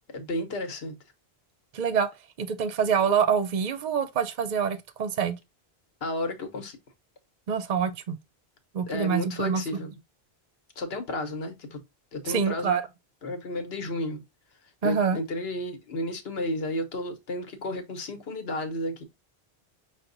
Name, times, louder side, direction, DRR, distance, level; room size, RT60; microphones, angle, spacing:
voice 1, 0.1-0.9 6.0-6.8 8.9-9.9 10.8-11.8 12.1-12.8 13.2-14.2 14.8-19.0, left 1 dB, 70° left, 1.2 m, -32 dB
voice 2, 1.7-2.1 2.4-5.4 7.5-8.2 8.7-9.6 12.3-12.8 14.8-15.2, right 6 dB, 55° right, 0.6 m, -26 dB
5.8 x 2.1 x 3.8 m
omnidirectional pair, 1.1 m